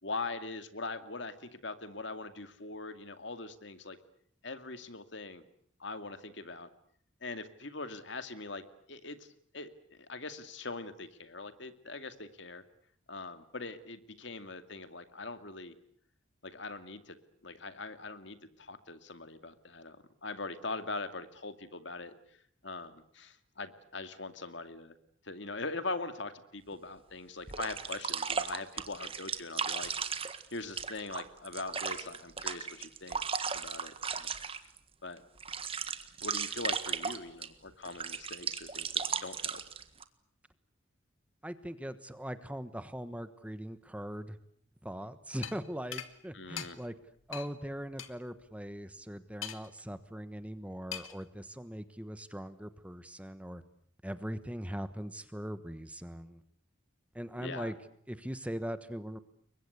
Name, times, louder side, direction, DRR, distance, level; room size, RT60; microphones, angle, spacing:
voice 1, 0.0-4.0 4.4-5.4 5.8-6.7 7.2-8.6 8.9-9.3 9.5-12.6 13.1-15.7 16.4-17.2 17.4-22.1 22.6-24.9 25.2-29.9 30.5-33.2 33.5-34.3 35.0-35.2 36.2-39.6 46.3-46.8 57.4-57.7, left 3 dB, 65° left, 10 dB, 2.3 m, -42 dB
sound 1, 26.7-26.8 27.5-34.8 35.2-37.5 37.8-40.0, right 6 dB, 25° right, 1.6 m, -36 dB
voice 2, 41.4-44.4 44.8-46.9 47.3-53.6 54.0-56.4 57.1-57.7 58.1-59.2, equal, 5° right, 12 dB, 1.2 m, -40 dB
sound 2, 45.4-45.6 45.9-46.1 46.6-46.7 47.3-47.5 48.0-48.1 49.4-49.8 50.9-51.2, left 9 dB, 80° left, 2.2 m, -40 dB
29.5 x 23.5 x 8.1 m, 0.62 s
head